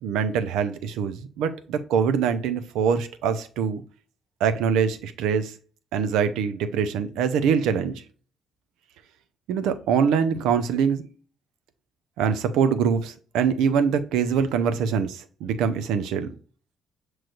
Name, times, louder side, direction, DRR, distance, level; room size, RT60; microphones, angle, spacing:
voice 1, 0.0-3.8 4.4-5.5 5.9-8.0 9.5-11.0 12.2-16.3, right 7 dB, 80° right, 0.5 m, -24 dB
6.2 x 3.1 x 2.4 m
hypercardioid pair, 55°, 0 cm